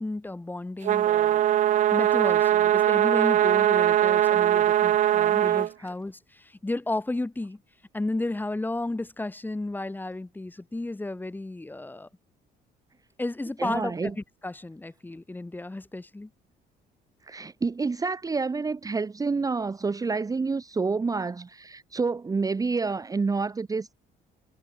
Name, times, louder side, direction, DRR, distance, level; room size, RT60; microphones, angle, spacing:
voice 1, 0.0-1.5 1.9-7.6 7.9-12.1 13.2-16.3, left 2 dB, 10° left, 1.9 m, -33 dB
sound 1, 0.8-5.7, right 12 dB, 50° right, 0.5 m, -21 dB
voice 2, 13.6-14.1 17.3-23.9, right 4 dB, 20° right, 1.2 m, -28 dB
cardioid pair, 110°, 17 cm